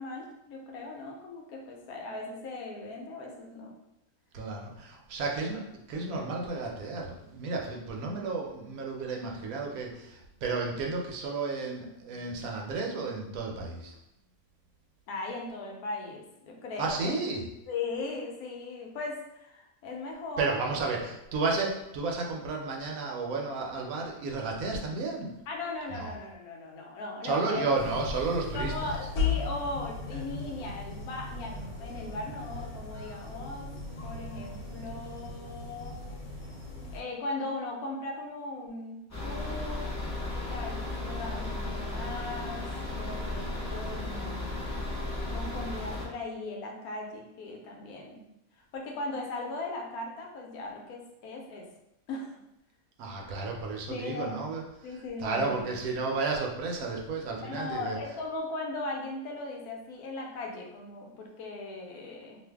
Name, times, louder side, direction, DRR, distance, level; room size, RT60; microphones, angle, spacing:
voice 1, 0.0-3.7 15.1-17.2 17.7-20.6 25.5-27.7 28.5-33.7 34.0-36.0 36.9-40.0 40.3-44.6 45.3-48.2 48.7-51.6 52.1-52.4 53.9-54.3 54.8-55.7 57.4-62.4, left 2 dB, 80° left, 0 dB, 1.1 m, -38 dB
voice 2, 4.3-14.0 16.8-17.4 20.4-25.3 25.9-26.1 27.2-29.0 53.0-54.6 54.9-58.0, right 3 dB, 75° right, 0 dB, 1.0 m, -32 dB
sound 1, 27.7-37.0, left 4 dB, 60° left, 1.0 m, -37 dB
sound 2, 39.1-46.0, left 2 dB, 20° left, 0.5 m, -35 dB
2.6 x 2.5 x 3.3 m, 0.87 s
omnidirectional pair, 1.6 m